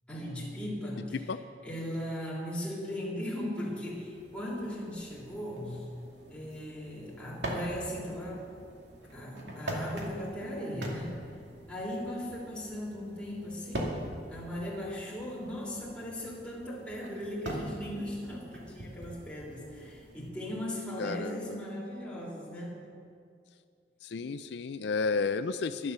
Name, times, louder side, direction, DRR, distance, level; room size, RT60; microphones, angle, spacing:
voice 1, 0.1-1.3 1.6-5.8 6.3-8.5 9.1-11.2 11.7-14.0 14.3-22.8, equal, 5° left, -6 dB, 3.3 m, -38 dB
sound 1, 3.7-20.3, right 1 dB, 80° right, 2.4 m, -43 dB
voice 2, 21.0-21.6 24.0-25.9, left 4 dB, 75° left, 11 dB, 0.4 m, -32 dB
12.0 x 11.5 x 6.7 m, 2.4 s
head